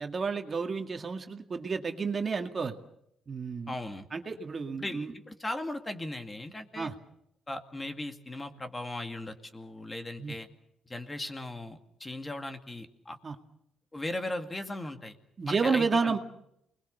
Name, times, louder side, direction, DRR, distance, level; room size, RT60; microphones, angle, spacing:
voice 1, 0.0-2.8 3.3-3.7 4.1-5.1 6.8-6.9 10.2-10.4 13.2-13.4 15.4-16.2, right 4 dB, 35° right, 5 dB, 2.0 m, -31 dB
voice 2, 3.7-4.1 4.8-6.9 7.5-10.5 10.9-13.2 13.9-15.1 15.5-16.2, left 1 dB, 20° left, 7 dB, 2.3 m, -38 dB
28.5 x 21.5 x 6.8 m, 0.78 s
cardioid pair, 90°, 0 cm